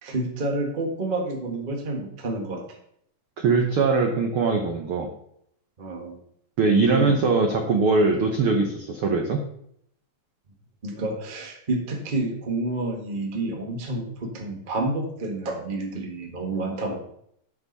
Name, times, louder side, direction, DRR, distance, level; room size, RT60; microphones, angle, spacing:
voice 1, 0.0-2.6 5.8-6.2 6.7-7.2 10.8-17.0, right 2 dB, 50° right, 2 dB, 0.6 m, -29 dB
voice 2, 3.4-5.1 6.6-9.4, right 4 dB, 90° right, 3 dB, 1.1 m, -21 dB
12.5 x 6.0 x 4.1 m, 0.70 s
omnidirectional pair, 3.8 m